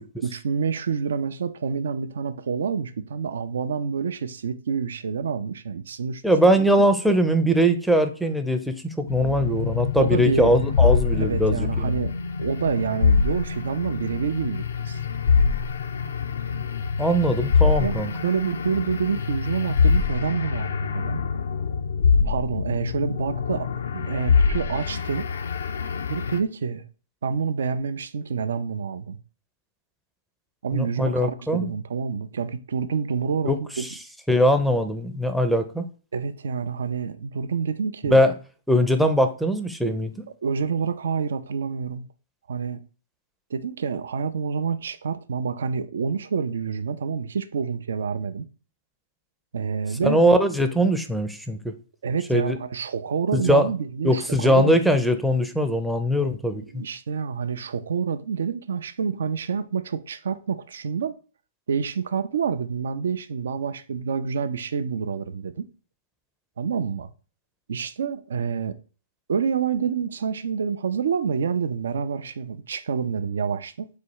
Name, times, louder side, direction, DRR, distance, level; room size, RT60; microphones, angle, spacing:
voice 1, 0.2-6.2 6.5-6.9 10.0-12.1 12.4-15.0 17.8-21.2 22.2-25.3 26.1-26.8 27.2-29.2 30.6-33.9 36.1-38.3 40.4-42.1 42.5-42.8 43.5-48.5 49.5-50.2 52.0-54.8 56.7-61.2 61.7-65.7 66.6-67.1 67.7-68.8 69.3-73.9, right 6 dB, 75° right, 0.4 m, -28 dB
voice 2, 6.2-11.9 17.0-18.1 30.7-31.7 33.4-33.9 34.3-35.9 38.1-38.3 38.7-40.1 50.0-51.7 52.3-52.6 53.3-53.7 54.0-56.8, equal, ahead, 0.5 m, -21 dB
sound 1, 9.1-26.4, left 5 dB, 80° left, 0.4 m, -24 dB
4.1 x 2.3 x 4.5 m
hypercardioid pair, 135°, 0 cm